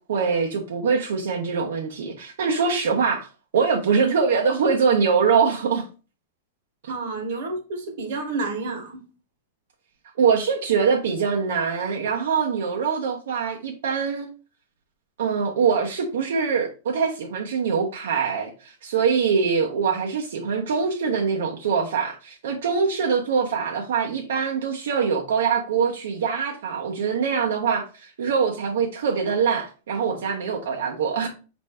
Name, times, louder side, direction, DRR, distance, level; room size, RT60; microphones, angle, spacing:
voice 1, 0.1-3.3 3.5-5.8 6.8-6.9 10.2-14.3 15.2-31.3, right 6 dB, 80° right, 0.6 m, -23 dB
voice 2, 6.9-9.0, right 3 dB, 55° right, 1.0 m, -30 dB
4.2 x 2.6 x 3.3 m
supercardioid pair, 175°, 0 cm